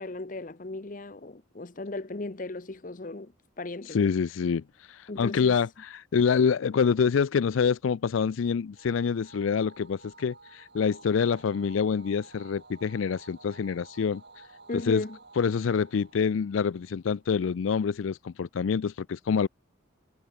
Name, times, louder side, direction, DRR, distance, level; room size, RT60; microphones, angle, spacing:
voice 1, 0.0-3.3 3.6-4.1 5.1-5.6 14.7-15.2, left 2 dB, 45° left, 0.8 m, -36 dB
voice 2, 3.9-14.4 14.7-15.0 15.4-19.5, left 6 dB, 85° left, 0.4 m, -26 dB
sound 1, 8.8-17.4, right 3 dB, 60° right, 4.2 m, -53 dB
head